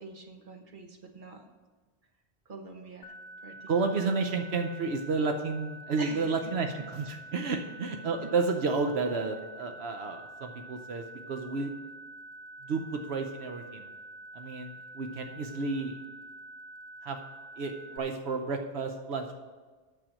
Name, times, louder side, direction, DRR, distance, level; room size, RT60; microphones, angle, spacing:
voice 1, 0.0-1.4 2.5-3.1 3.4-3.7 6.0-6.3 6.6-6.8 7.4-7.6 8.2-8.3, right 3 dB, 50° right, 4 dB, 1.3 m, -44 dB
sound 1, 3.0-18.0, right 1 dB, 80° left, 0.8 m, -47 dB
voice 2, 3.7-11.7 12.6-13.9 14.3-16.0 17.0-17.2 17.6-19.3, right 4 dB, 80° right, 5 dB, 1.1 m, -31 dB
8.9 x 6.9 x 6.3 m, 1.4 s
omnidirectional pair, 1.1 m